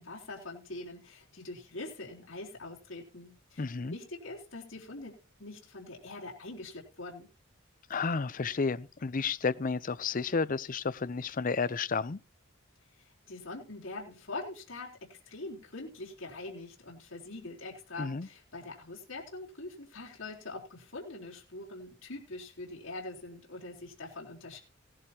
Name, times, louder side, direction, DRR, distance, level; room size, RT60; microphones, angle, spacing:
voice 1, 0.0-5.1 5.4-7.3 13.0-24.6, left 2 dB, 70° left, 4.0 m, -43 dB
voice 2, 3.6-4.0 7.9-12.2 18.0-18.3, left 4 dB, 45° left, 0.6 m, -31 dB
18.0 x 11.0 x 2.9 m
head